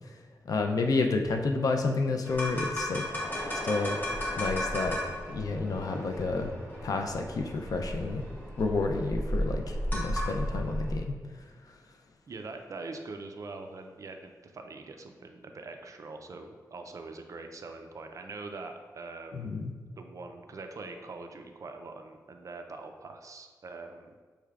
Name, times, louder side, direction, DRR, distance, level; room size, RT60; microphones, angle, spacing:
voice 1, 0.5-3.0 3.5-4.0 4.4-5.0 5.3-6.5 6.8-8.3 8.6-11.1 19.3-19.7, left 3 dB, 65° left, 4 dB, 0.4 m, -30 dB
sound 1, 2.3-11.0, equal, 25° left, 1.4 m, -34 dB
voice 2, 12.3-19.6 20.0-24.2, right 3 dB, 55° right, 5 dB, 0.4 m, -43 dB
6.5 x 3.2 x 2.4 m, 1.5 s
wide cardioid pair, 90°, 7 cm